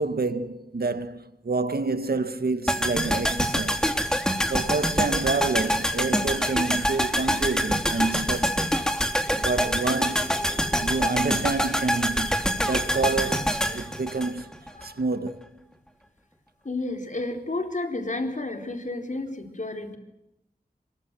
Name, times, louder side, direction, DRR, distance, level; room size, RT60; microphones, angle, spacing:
voice 1, 0.0-3.8 4.5-8.8 9.4-10.3 10.8-14.5 14.8-15.5, right 3 dB, 80° right, 2.0 m, -28 dB
sound 1, 2.7-14.9 15.1-15.2, equal, 5° left, 3.6 m, -25 dB
voice 2, 8.9-9.5 10.0-11.5 12.1-12.2 14.7-15.0 16.6-20.0, left 2 dB, 55° left, 4.4 m, -33 dB
27.0 x 24.0 x 7.8 m
wide cardioid pair, 50°, 16 cm